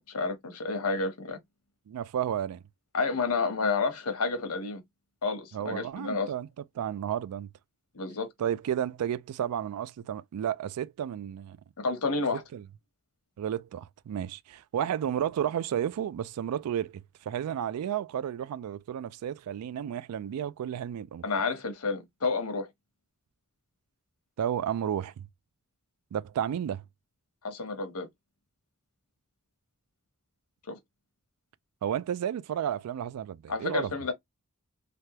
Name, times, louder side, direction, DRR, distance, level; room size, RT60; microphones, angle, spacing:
voice 1, 0.1-1.4 2.9-4.8 5.2-6.3 7.9-8.3 11.8-12.4 21.2-22.7 27.4-28.1 30.7-30.8 33.5-34.1, left 4 dB, 75° left, 0.9 m, -30 dB
voice 2, 1.9-2.6 5.5-6.5 6.7-7.5 8.4-11.6 12.5-12.6 13.4-21.2 24.4-25.3 26.1-26.8 31.8-33.9, right 9 dB, 80° right, 0.3 m, -32 dB
3.4 x 2.2 x 2.8 m
head